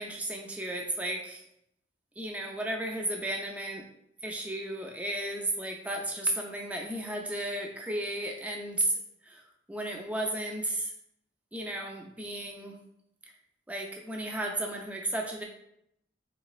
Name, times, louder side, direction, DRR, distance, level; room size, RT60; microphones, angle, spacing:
voice 1, 0.0-1.4 2.2-3.8 4.2-8.9 9.2-10.9 11.5-12.7 13.7-15.4, right 1 dB, 10° right, 1 dB, 0.4 m, -34 dB
4.1 x 3.0 x 2.4 m, 0.77 s
head